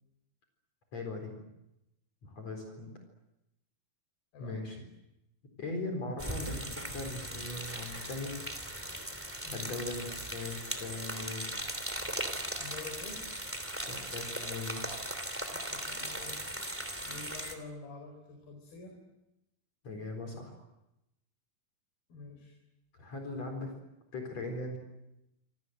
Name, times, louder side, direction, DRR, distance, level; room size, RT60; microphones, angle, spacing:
voice 1, 0.9-1.4 2.2-2.9 4.4-4.8 5.6-8.3 9.5-11.5 13.9-14.9 19.8-20.6 23.0-23.7 24.1-24.8, left 2 dB, 45° left, 3 dB, 5.1 m, -39 dB
voice 2, 4.3-4.7 9.4-9.6 12.6-13.2 15.5-16.5 17.1-19.0 22.1-22.6, left 3 dB, 70° left, 3 dB, 6.2 m, -47 dB
sound 1, 6.2-17.5, right 1 dB, 5° right, 2.1 m, -38 dB
27.5 x 26.0 x 7.9 m, 0.91 s
omnidirectional pair, 4.5 m